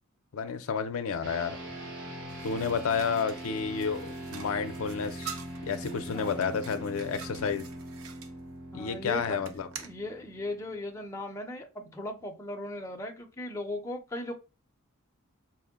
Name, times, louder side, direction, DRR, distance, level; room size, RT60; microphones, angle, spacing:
voice 1, 0.3-1.6 2.4-7.6 8.7-9.7, left 6 dB, 70° left, 0.4 m, -31 dB
sound 1, 1.2-10.9, right 1 dB, 55° right, 1.0 m, -42 dB
sound 2, 2.3-8.3 9.4-10.0, right 7 dB, 75° right, 0.6 m, -47 dB
voice 2, 6.1-6.5 8.7-9.4 9.8-14.3, left 1 dB, 15° left, 0.5 m, -38 dB
4.5 x 2.1 x 3.5 m
head